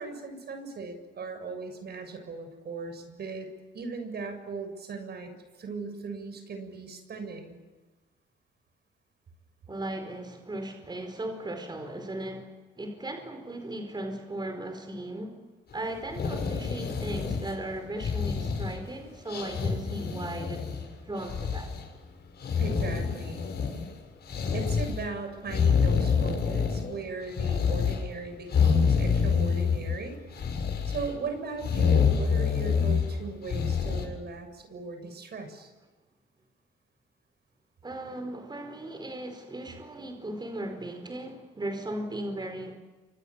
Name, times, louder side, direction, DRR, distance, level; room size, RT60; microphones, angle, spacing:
voice 1, 0.0-3.5 3.7-5.3 5.6-7.6 22.6-23.4 24.5-30.2 30.8-35.7, right 4 dB, 55° right, 7 dB, 7.3 m, -38 dB
voice 2, 9.7-15.4 15.7-21.7 37.8-42.8, right 1 dB, 20° right, 6 dB, 4.7 m, -37 dB
sound 1, 16.0-17.6 18.0-18.9 19.3-20.8 21.2-21.8 22.4-23.9 24.3-25.0 25.5-27.0 27.3-28.0 28.5-30.0 30.3-31.1 31.6-33.1 33.5-34.1, left 6 dB, 55° left, 7.7 m, -27 dB
29.5 x 25.5 x 7.5 m, 1.2 s
cardioid pair, 90°, 20 cm